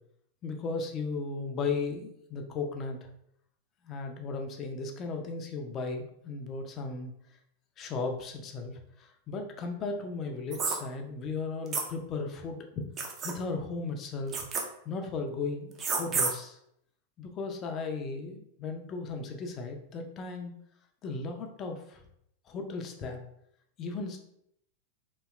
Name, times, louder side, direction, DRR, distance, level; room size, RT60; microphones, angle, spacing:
voice 1, 0.4-3.0 3.9-7.1 7.8-8.7 9.0-12.9 13.2-14.4 14.9-16.6 17.2-20.5 21.0-22.0 22.5-23.2 23.8-24.2, left 4 dB, 30° left, 4 dB, 0.4 m, -36 dB
sound 1, 10.5-10.8 11.7-11.8 13.0-13.3 14.3-14.6 15.8-16.3, right 5 dB, 25° right, 0.5 m, -29 dB
3.0 x 2.7 x 2.3 m, 0.73 s
figure-of-eight pair, 90°, 0 cm